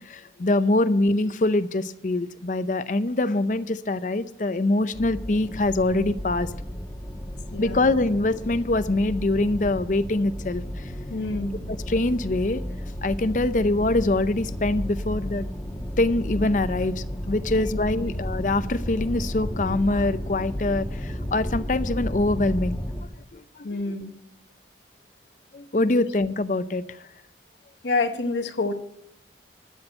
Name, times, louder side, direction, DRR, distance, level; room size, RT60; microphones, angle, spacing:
voice 1, 0.0-6.5 7.6-10.9 11.7-12.6 13.0-15.5 16.0-22.8 23.3-23.7 25.5-26.8, left 2 dB, 45° left, 13 dB, 0.6 m, -24 dB
sound 1, 4.9-23.0, equal, 15° left, 1.2 m, -33 dB
voice 2, 7.5-7.9 11.1-11.6 17.5-17.6 18.0-18.1 23.6-24.1 27.8-28.7, left 3 dB, 85° left, 7 dB, 0.9 m, -28 dB
12.5 x 6.2 x 8.7 m, 0.85 s
head